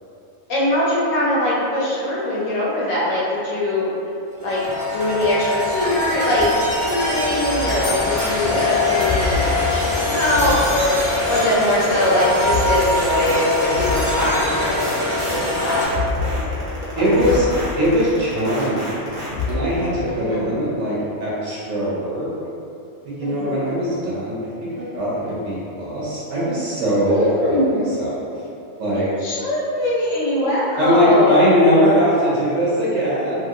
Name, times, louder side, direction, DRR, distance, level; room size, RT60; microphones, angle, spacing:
voice 1, 0.5-3.9 4.4-4.6 4.9-6.5 6.8-11.0 11.3-14.9 15.3-16.6 16.9-17.0 17.3-17.4 20.1-20.5 23.2-24.0 27.1-27.8 28.9-31.4, left 1 dB, 85° left, -7 dB, 1.1 m, -22 dB
sound 1, 4.4-15.9, left 2 dB, 5° right, 0.8 m, -23 dB
sound 2, 9.0-11.4 12.3-14.9 15.8-18.4 19.2-19.9, left 4 dB, 65° left, 0.9 m, -28 dB
sound 3, 12.5-19.5, right 1 dB, 90° right, 1.3 m, -32 dB
voice 2, 16.9-17.5 17.8-19.1 19.5-22.3 23.0-28.3 28.8-29.1 30.8-33.4, equal, 75° right, -8 dB, 1.0 m, -20 dB
2.8 x 2.8 x 2.5 m, 2.7 s
omnidirectional pair, 1.3 m